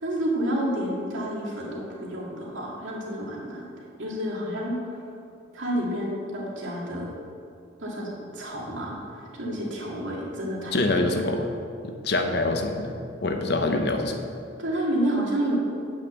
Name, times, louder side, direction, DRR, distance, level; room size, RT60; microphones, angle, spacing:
voice 1, 0.0-3.7 4.0-5.0 5.5-7.1 7.8-9.0 9.3-11.0 14.6-15.6, right 1 dB, 75° right, -3 dB, 2.2 m, -29 dB
voice 2, 10.7-11.5 11.8-12.9 13.2-14.2, left 2 dB, 55° left, 4 dB, 0.9 m, -25 dB
8.7 x 5.8 x 7.4 m, 2.5 s
head